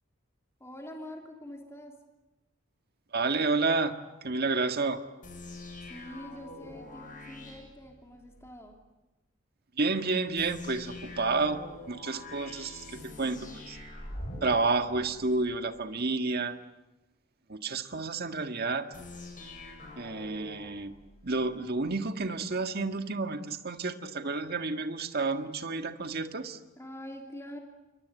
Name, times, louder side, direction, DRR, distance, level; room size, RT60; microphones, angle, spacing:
voice 1, 0.6-2.0 5.8-8.8 26.8-27.6, equal, 15° left, 2 dB, 3.1 m, -45 dB
voice 2, 3.1-3.9 4.2-5.0 9.8-11.6 11.9-13.8 14.4-16.6 17.5-18.9 20.0-20.9 21.2-26.6, right 3 dB, 50° right, 7 dB, 1.8 m, -30 dB
sound 1, 5.2-8.5 10.4-15.6 18.9-21.6, left 2 dB, 40° left, 7.5 m, -45 dB
28.5 x 24.0 x 8.3 m, 1.1 s
head